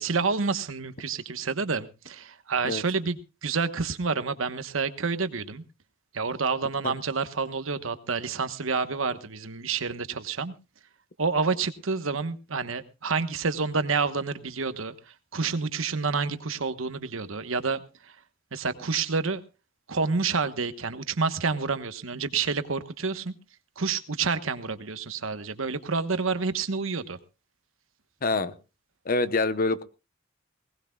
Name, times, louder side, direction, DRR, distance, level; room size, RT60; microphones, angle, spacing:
voice 1, 0.0-5.6 6.1-10.5 11.2-14.9 15.3-17.8 18.5-19.4 19.9-23.3 23.8-27.2, right 4 dB, 80° right, 11 dB, 1.2 m, -28 dB
voice 2, 28.2-28.5 29.0-29.8, left 3 dB, 45° left, 13 dB, 1.0 m, -25 dB
20.5 x 18.5 x 2.3 m, 0.31 s
head